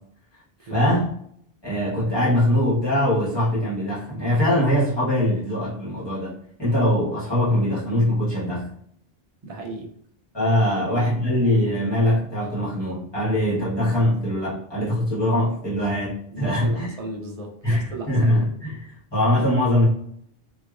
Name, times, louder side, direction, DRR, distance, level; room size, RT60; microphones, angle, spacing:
voice 1, 0.7-1.1 1.6-8.7 10.3-16.9 17.6-18.8 19.1-19.9, left 1 dB, 25° left, -10 dB, 1.5 m, -22 dB
voice 2, 9.4-9.9 10.4-11.1 16.3-18.5, right 2 dB, 45° right, 0 dB, 0.6 m, -36 dB
3.0 x 2.7 x 2.5 m, 0.68 s
omnidirectional pair, 1.0 m